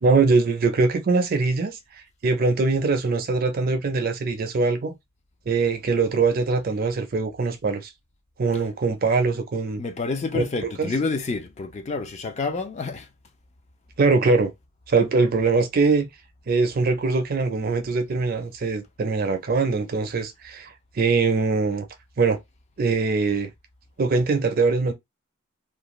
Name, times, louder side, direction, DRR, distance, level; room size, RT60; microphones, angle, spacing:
voice 1, 0.0-1.8 2.2-4.9 5.5-7.9 8.4-9.8 10.3-10.9 14.0-14.5 14.9-16.1 16.5-20.7 21.0-21.9 22.2-22.4 22.8-23.5 24.0-24.9, right 4 dB, 45° right, 0.4 m, -22 dB
voice 2, 9.8-13.1, left 3 dB, 30° left, 0.4 m, -28 dB
2.5 x 2.2 x 3.0 m
head